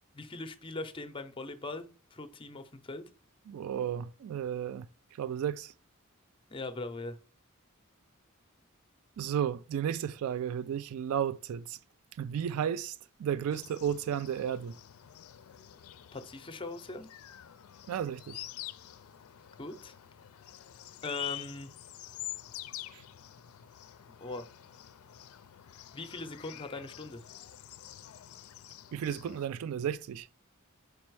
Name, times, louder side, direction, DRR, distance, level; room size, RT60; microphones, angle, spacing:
voice 1, 0.2-3.0 6.5-7.2 16.1-17.1 19.6-19.9 21.0-21.7 24.2-24.5 25.9-27.2, left 2 dB, 25° left, 0.6 m, -40 dB
voice 2, 3.5-4.9 5.2-5.7 9.2-11.8 12.2-14.7 17.9-18.4 22.9-23.0 28.9-30.3, right 9 dB, 75° right, 0.3 m, -33 dB
sound 1, 13.5-29.5, left 13 dB, 75° left, 0.4 m, -47 dB
5.2 x 4.2 x 4.6 m
head